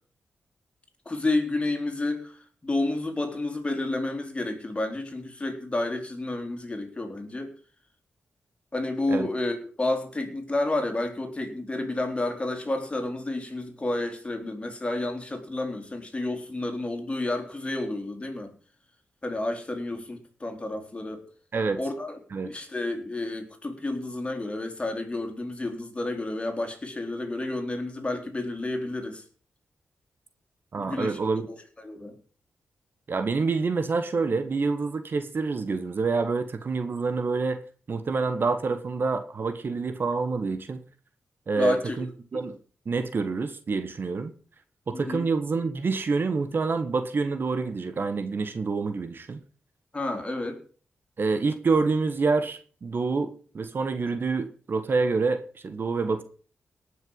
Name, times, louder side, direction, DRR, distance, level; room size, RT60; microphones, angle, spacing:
voice 1, 1.1-7.5 8.7-18.5 19.2-21.2 21.8-22.2 22.4-29.2 30.8-31.2 31.5-32.2 41.5-42.1 44.9-45.3 49.9-50.6, left 2 dB, 25° left, 4 dB, 3.7 m, -30 dB
voice 2, 30.7-31.5 33.1-37.6 37.9-40.8 41.5-42.1 42.3-42.6 42.8-44.3 44.9-49.4 51.2-56.2, right 4 dB, 55° right, 10 dB, 1.4 m, -27 dB
18.0 x 6.5 x 5.6 m, 0.41 s
cardioid pair, 60°, 4 cm